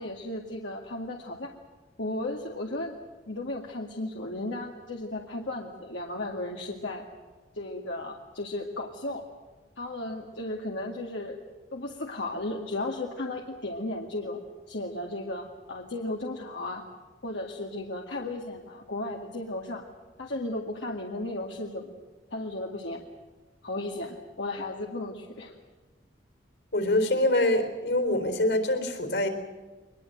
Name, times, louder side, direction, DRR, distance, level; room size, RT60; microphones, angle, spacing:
voice 1, 0.0-1.5 2.0-2.9 3.3-7.0 7.6-9.2 9.8-11.4 11.7-14.4 14.7-16.8 17.2-19.8 20.2-21.9 22.3-23.0 23.6-25.5, left 2 dB, 85° left, 0 dB, 2.1 m, -35 dB
voice 2, 26.7-29.3, left 1 dB, 70° left, 7 dB, 4.0 m, -25 dB
23.5 x 21.0 x 7.9 m, 1.3 s
head